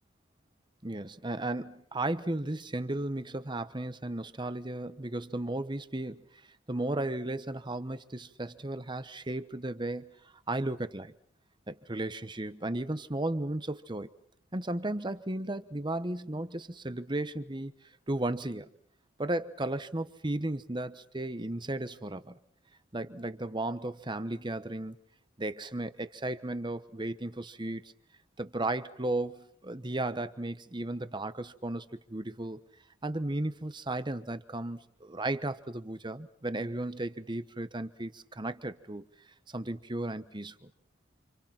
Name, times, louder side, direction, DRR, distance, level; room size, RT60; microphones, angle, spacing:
voice 1, 0.8-6.2 6.7-10.1 10.5-11.1 11.7-14.1 14.5-17.7 18.1-18.7 19.2-22.4 22.9-25.0 25.4-27.8 28.4-31.8 32.1-32.6 33.0-39.1 39.5-40.7, right 1 dB, 25° right, 1.1 m, -35 dB
28.5 x 28.5 x 5.9 m
head